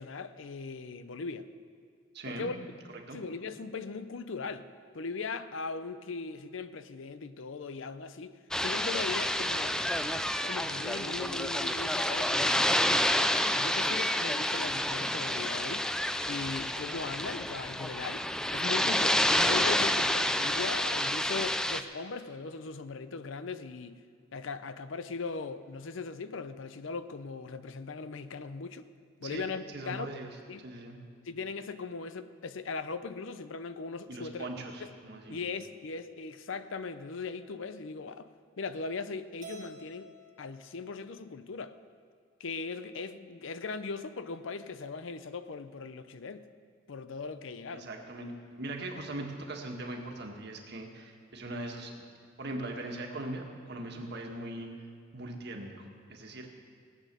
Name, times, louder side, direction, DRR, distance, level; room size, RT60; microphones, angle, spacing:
voice 1, 0.0-1.5 2.2-2.6 3.1-4.7 4.9-9.8 10.4-15.9 16.3-24.0 24.3-28.9 29.2-30.1 30.5-30.7 31.3-34.5 34.8-34.9 35.3-38.3 38.6-40.1 40.4-41.8 42.4-46.4 46.9-47.9, left 4 dB, 65° left, 12 dB, 0.6 m, -39 dB
voice 2, 2.1-2.5 3.1-3.2 29.2-30.3 30.6-31.0 34.1-35.4 47.7-48.3 48.6-51.9 52.4-54.8 55.1-56.5, right 2 dB, 55° right, 2 dB, 1.6 m, -40 dB
sound 1, 8.5-21.8, left 1 dB, 5° left, 0.3 m, -29 dB
Keyboard (musical), 39.4-41.8, right 3 dB, 40° right, 1.4 m, -52 dB
18.0 x 8.4 x 6.8 m, 2.2 s
head